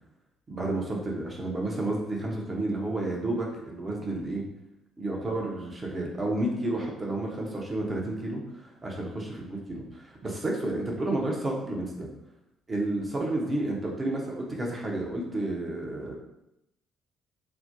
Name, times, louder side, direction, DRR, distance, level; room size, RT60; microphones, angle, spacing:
voice 1, 0.5-4.4 5.0-8.4 8.8-12.1 12.7-16.1, right 2 dB, 30° right, -1 dB, 0.8 m, -31 dB
3.2 x 2.1 x 2.6 m, 0.87 s
figure-of-eight pair, 45°, 0 cm